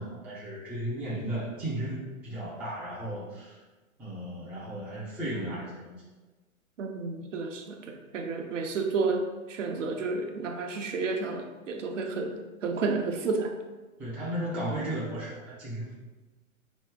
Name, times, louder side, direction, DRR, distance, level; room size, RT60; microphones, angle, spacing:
voice 1, 0.0-3.6 4.0-6.0 14.0-15.9, right 1 dB, 5° right, -9 dB, 0.4 m, -35 dB
voice 2, 6.8-9.2 9.5-12.3 12.6-13.5, right 4 dB, 60° right, 3 dB, 0.7 m, -31 dB
4.2 x 3.0 x 3.7 m, 1.2 s
figure-of-eight pair, 105°, 43 cm